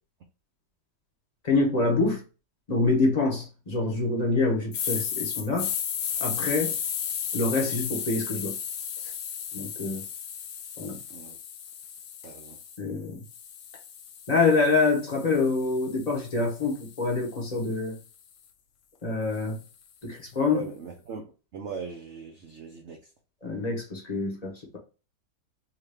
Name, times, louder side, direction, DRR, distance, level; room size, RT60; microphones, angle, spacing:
voice 1, 1.4-2.2 2.7-5.7 6.2-6.7 7.3-8.5 9.5-10.0 10.8-11.0 12.8-13.2 14.3-18.0 19.0-19.6 20.0-20.7 23.4-24.8, left 3 dB, 45° left, 0.5 m, -26 dB
sound 1, 4.7-12.8 13.3-17.5, left 8 dB, 70° left, 0.9 m, -34 dB
voice 2, 12.2-12.6 20.5-23.0, right 4 dB, 85° right, 0.6 m, -39 dB
2.9 x 2.9 x 3.3 m
omnidirectional pair, 2.0 m